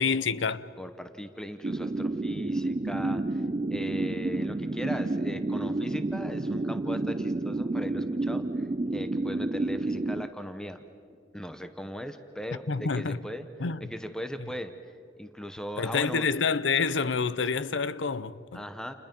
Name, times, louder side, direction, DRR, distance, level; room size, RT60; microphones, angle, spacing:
voice 1, 0.0-0.7 12.7-13.2 13.6-13.8 15.8-18.6, left 5 dB, 85° left, 0.7 m, -28 dB
voice 2, 0.8-3.4 3.7-10.8 11.3-13.5 13.8-14.7 15.2-16.3 18.5-18.9, equal, 5° left, 0.9 m, -39 dB
sound 1, 1.6-10.3, right 2 dB, 30° right, 0.5 m, -30 dB
30.0 x 29.5 x 5.3 m
head